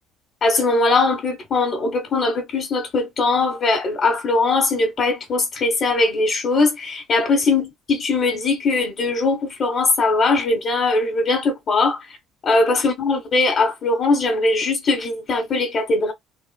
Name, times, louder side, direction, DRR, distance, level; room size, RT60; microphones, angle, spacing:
voice 1, 0.4-12.0 12.4-16.1, left 3 dB, 40° left, 1.2 m, -20 dB
3.8 x 2.5 x 2.3 m
cardioid pair, 140°, 0 cm